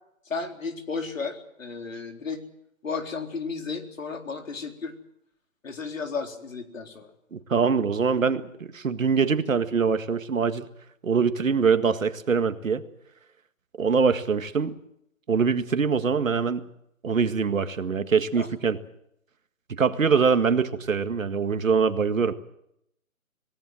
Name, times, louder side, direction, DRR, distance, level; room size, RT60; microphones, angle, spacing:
voice 1, 0.3-2.4 2.8-4.9 5.6-7.1 18.4-18.5, left 4 dB, 65° left, 4 dB, 4.0 m, -33 dB
voice 2, 7.3-10.7 11.0-12.8 13.8-14.7 15.3-16.6 17.0-18.8 19.7-22.3, right 5 dB, 65° right, 9 dB, 1.9 m, -23 dB
27.0 x 18.0 x 7.7 m, 0.78 s
hypercardioid pair, 165°, 43 cm